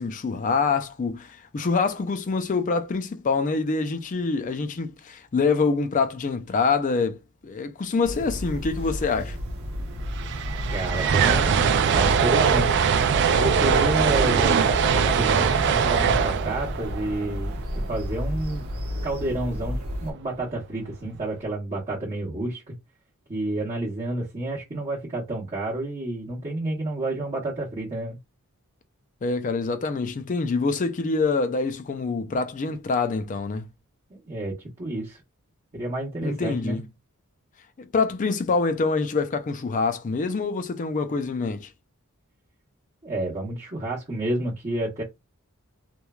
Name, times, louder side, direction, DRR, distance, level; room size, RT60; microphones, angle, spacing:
voice 1, 0.0-9.4 29.2-33.7 36.2-36.8 37.8-41.7, left 4 dB, 35° left, 0.4 m, -25 dB
sound 1, 8.0-20.1, equal, 80° right, 1.0 m, -32 dB
sound 2, 9.6-9.7 9.9-18.1, right 6 dB, 50° right, 0.3 m, -22 dB
voice 2, 10.7-12.8 13.4-17.6 17.9-18.7 19.0-22.8 23.3-28.2 34.3-35.2 35.7-36.8 43.0-45.0, right 1 dB, 30° right, 0.8 m, -30 dB
3.1 x 2.2 x 2.3 m
head